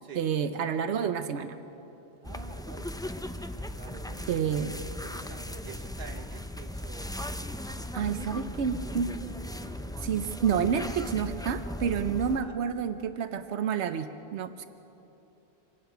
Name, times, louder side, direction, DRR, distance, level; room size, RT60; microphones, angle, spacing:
voice 1, 0.1-1.6 4.3-4.7 7.9-9.1 10.0-14.7, right 7 dB, 90° right, 10 dB, 1.0 m, -29 dB
sound 1, 2.2-12.4, left 1 dB, 5° left, 0.3 m, -37 dB
voice 2, 2.2-3.0 3.8-8.6 8.9-9.1 12.4-12.6, right 5 dB, 55° right, 6 dB, 1.2 m, -49 dB
26.0 x 18.0 x 5.7 m, 2.9 s
omnidirectional pair, 1.1 m